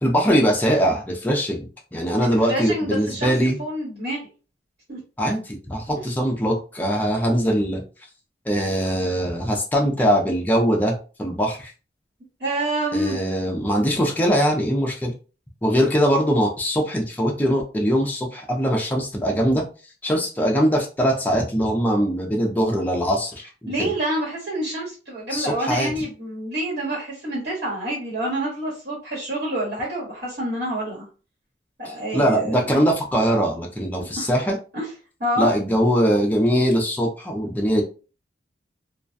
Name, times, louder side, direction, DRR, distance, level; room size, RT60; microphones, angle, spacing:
voice 1, 0.0-3.6 5.2-7.8 8.5-11.7 12.9-15.1 15.6-19.6 20.0-23.9 25.3-25.9 31.9-34.6 35.4-37.8, equal, 10° left, 0 dB, 0.4 m, -22 dB
voice 2, 2.2-4.2 4.9-5.0 10.5-10.7 12.4-13.2 23.7-31.0 31.8-32.8 34.2-34.3 34.7-34.9 35.2-35.5, right 1 dB, 60° right, -7 dB, 1.3 m, -27 dB
2.3 x 2.1 x 2.5 m, 0.35 s
head